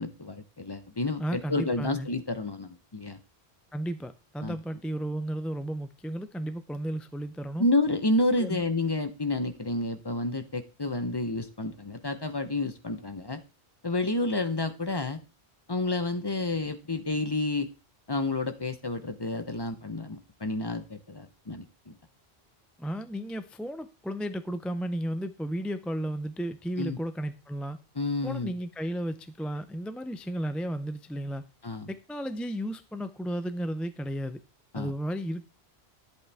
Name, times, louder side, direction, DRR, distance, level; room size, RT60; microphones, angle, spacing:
voice 1, 0.0-3.2 4.4-4.6 7.6-13.4 13.8-15.2 15.7-17.7 18.1-21.9 26.8-27.0 28.0-28.5 31.6-31.9 34.7-34.9, left 2 dB, 25° left, 0.8 m, -30 dB
voice 2, 1.2-2.1 3.7-7.7 8.4-8.6 22.8-27.8 28.2-31.4 31.9-34.4 34.7-35.5, equal, ahead, 0.3 m, -33 dB
11.0 x 8.2 x 3.4 m
omnidirectional pair, 1.1 m